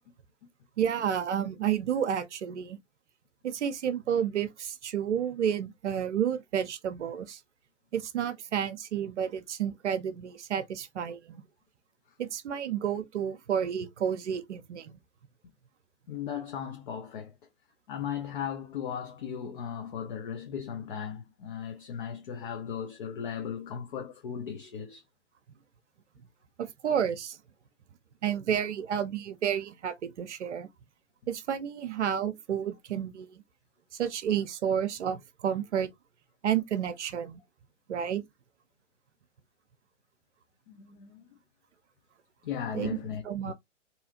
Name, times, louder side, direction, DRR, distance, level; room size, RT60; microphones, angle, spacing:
voice 1, 0.8-2.8 3.4-7.4 7.9-11.4 12.2-14.9 26.6-27.4 28.2-30.7 31.3-33.3 33.9-35.9 36.4-37.4 37.9-38.2 42.7-43.0 43.2-43.5, right 9 dB, 65° right, 0.6 m, -30 dB
voice 2, 16.1-17.3 17.9-25.0 40.7-41.2 42.4-43.5, left 8 dB, 45° left, 0.6 m, -37 dB
2.8 x 2.4 x 2.6 m
figure-of-eight pair, 125°, 38 cm